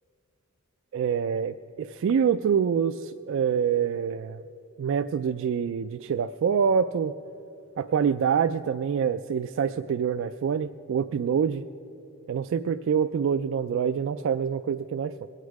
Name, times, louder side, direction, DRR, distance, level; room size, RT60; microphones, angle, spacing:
voice 1, 0.9-4.4 4.8-7.1 7.8-11.6 12.3-15.1, right 7 dB, 60° right, 10 dB, 0.3 m, -26 dB
22.0 x 8.3 x 4.7 m, 2.9 s
head